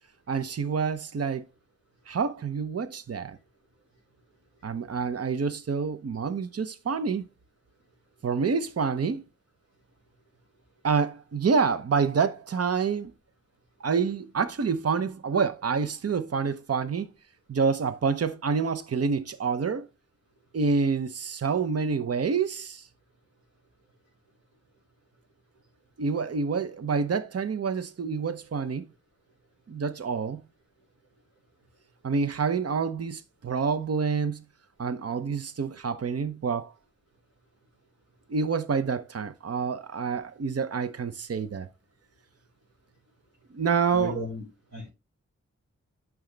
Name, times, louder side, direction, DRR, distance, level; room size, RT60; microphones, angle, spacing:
voice 1, 0.3-1.4 2.1-3.4 4.6-7.2 8.2-9.2 10.8-13.1 13.8-17.1 17.5-19.9 20.5-22.8 26.0-28.9 29.7-30.4 32.0-34.4 34.8-36.7 38.3-41.7 43.5-44.1, right 5 dB, 55° right, 0.8 m, -27 dB
voice 2, 43.9-44.4 44.7-44.9, equal, 70° right, 4.5 m, -34 dB
8.9 x 6.1 x 3.3 m
cardioid pair, 45°, 29 cm